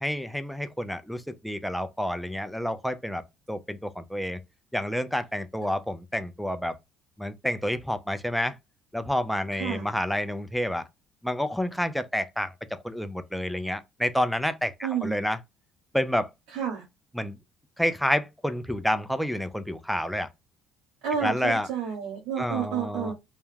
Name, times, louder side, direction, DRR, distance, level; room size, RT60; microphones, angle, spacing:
voice 1, 0.0-3.2 3.5-4.4 4.7-6.7 7.2-8.6 8.9-10.9 11.2-15.4 15.9-16.3 17.2-17.4 17.8-20.3 21.2-21.7 22.4-23.1, equal, ahead, 0.3 m, -29 dB
voice 2, 9.5-9.9 14.8-15.2 16.5-16.8 21.0-23.1, right 8 dB, 80° right, 0.8 m, -30 dB
2.3 x 2.1 x 3.1 m
cardioid pair, 100°, 0 cm